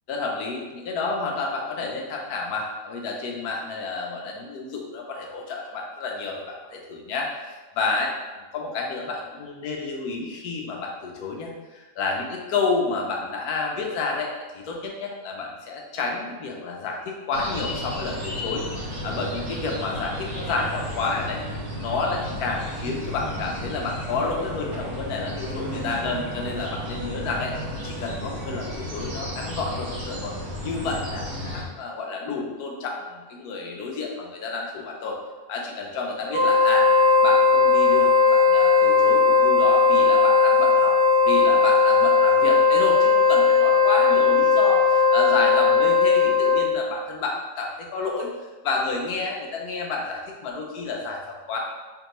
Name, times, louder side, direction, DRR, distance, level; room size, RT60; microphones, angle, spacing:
voice 1, 0.1-8.1 8.5-18.6 19.0-21.4 21.8-27.5 27.8-30.3 30.6-35.2 35.5-36.9 37.2-41.0 41.2-51.6, left 4 dB, 70° left, 0 dB, 1.1 m, -30 dB
sound 1, 17.3-31.6, equal, 70° right, 1.5 m, -33 dB
Wind instrument woodwind instrument, 36.3-46.8, left 4 dB, 45° right, 1.5 m, -18 dB
3.5 x 3.4 x 3.0 m, 1.2 s
omnidirectional pair, 1.8 m